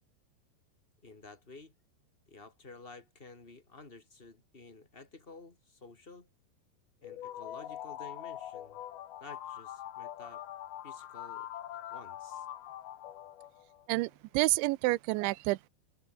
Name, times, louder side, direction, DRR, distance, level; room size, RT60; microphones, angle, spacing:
voice 1, 1.0-1.7 2.3-6.3 7.0-8.8 9.2-10.4 10.8-11.5 11.9-12.5, left 3 dB, 15° left, 3.0 m, -52 dB
sound 1, 7.0-13.9, left 12 dB, 65° left, 3.2 m, -43 dB
voice 2, 13.9-15.7, right 21 dB, 90° right, 3.0 m, -29 dB
omnidirectional pair, 5.2 m